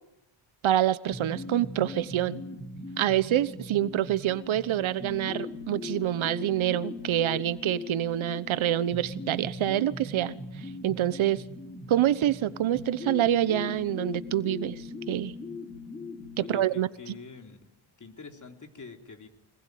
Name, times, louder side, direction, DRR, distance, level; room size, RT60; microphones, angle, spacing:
voice 1, 0.6-2.4 3.0-11.4 11.9-15.3 16.4-17.1, right 12 dB, 75° right, 1.2 m, -27 dB
sound 1, 1.1-16.6, left 2 dB, 15° left, 3.8 m, -39 dB
voice 2, 16.4-17.6 18.0-19.3, left 4 dB, 35° left, 3.7 m, -46 dB
25.5 x 20.0 x 9.4 m
cardioid pair, 115°, 49 cm